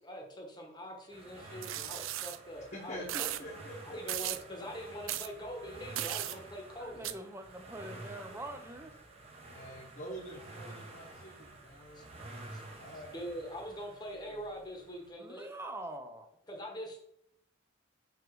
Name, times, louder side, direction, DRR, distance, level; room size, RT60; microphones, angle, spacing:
voice 1, 0.0-3.1 3.9-7.1 11.9-12.0 12.5-12.6 13.1-15.5 16.5-17.0, equal, 20° left, 1 dB, 1.0 m, -43 dB
sound 1, 1.1-15.1, right 2 dB, 30° right, 0.9 m, -50 dB
sound 2, 1.6-2.4 3.1-3.4 4.1-4.4 5.1-5.3 6.0-6.4 7.0-7.1, right 14 dB, 75° right, 0.4 m, -36 dB
voice 2, 2.6-4.2 9.5-12.1 12.8-13.2 14.1-14.4, equal, 45° left, -4 dB, 1.0 m, -46 dB
voice 3, 6.8-8.9 15.2-16.3, right 1 dB, 10° right, 6 dB, 0.5 m, -44 dB
5.0 x 4.9 x 4.7 m, 0.75 s
head